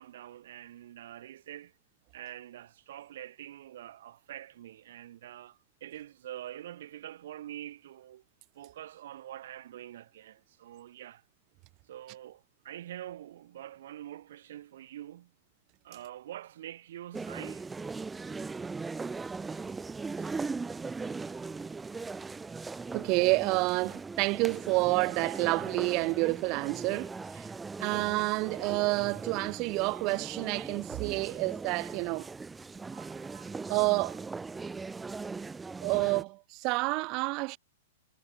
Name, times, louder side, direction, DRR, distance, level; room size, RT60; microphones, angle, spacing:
voice 1, 0.0-1.8 2.1-8.2 8.6-11.2 11.9-15.3 15.8-17.6, right 12 dB, 55° right, 3.6 m, -45 dB
sound 1, 17.1-36.2, right 4 dB, 10° right, 1.6 m, -39 dB
voice 2, 22.9-27.5 27.8-32.3 32.9-34.2 35.8-37.6, right 26 dB, 35° right, 1.2 m, -29 dB
figure-of-eight pair, 105°, 0 cm